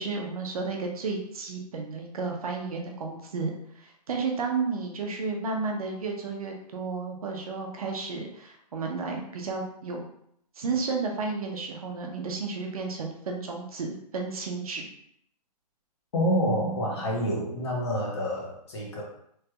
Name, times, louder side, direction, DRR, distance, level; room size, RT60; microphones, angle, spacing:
voice 1, 0.0-10.1 10.6-14.9, right 4 dB, 60° right, 1 dB, 0.7 m, -32 dB
voice 2, 16.1-19.0, equal, 40° left, -3 dB, 0.9 m, -27 dB
3.2 x 2.9 x 2.3 m, 0.71 s
hypercardioid pair, 170°, 21 cm